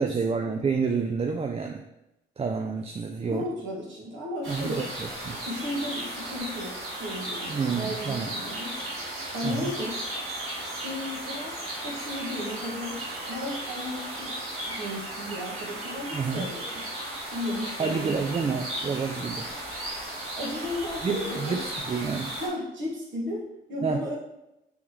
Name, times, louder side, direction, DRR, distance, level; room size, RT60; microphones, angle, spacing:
voice 1, 0.0-1.8 2.4-3.5 4.5-5.4 7.5-8.3 9.4-9.7 16.1-16.4 17.8-19.5 21.0-22.3 23.8-24.1, right 5 dB, 30° right, 4 dB, 0.4 m, -29 dB
voice 2, 3.2-4.9 5.4-8.8 9.3-10.0 10.7-11.5 11.8-13.0 13.3-14.4 14.7-16.9 17.3-18.5 20.4-21.6 22.4-24.2, left 1 dB, 60° right, -3 dB, 1.6 m, -34 dB
sound 1, 4.4-22.5, right 1 dB, 85° right, 1.5 m, -35 dB
4.8 x 3.4 x 3.1 m, 0.90 s
hypercardioid pair, 50°, 21 cm